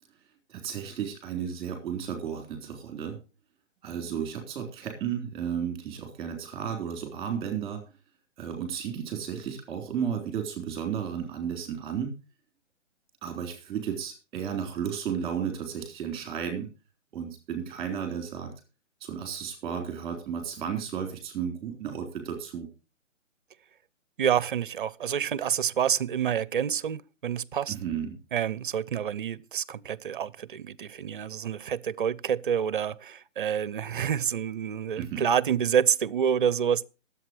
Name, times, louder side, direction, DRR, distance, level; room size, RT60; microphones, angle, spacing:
voice 1, 0.5-3.2 3.8-7.8 8.4-12.1 13.2-16.7 17.1-18.5 19.0-22.7 27.7-28.2 35.0-35.2, right 8 dB, 15° right, 3.6 m, -33 dB
voice 2, 24.2-27.7 28.3-36.8, right 8 dB, 45° right, 0.6 m, -28 dB
21.5 x 8.3 x 3.0 m
hypercardioid pair, 150°, 38 cm